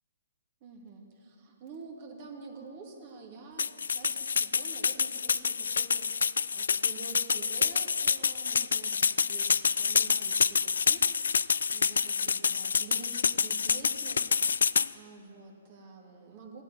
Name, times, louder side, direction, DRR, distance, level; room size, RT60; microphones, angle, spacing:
voice 1, 0.6-16.6, right 4 dB, 40° right, 0 dB, 2.6 m, -48 dB
sound 1, 3.6-14.9, left 6 dB, 80° left, 0.3 m, -27 dB
15.5 x 8.1 x 9.2 m, 2.5 s
hypercardioid pair, 140°, 0 cm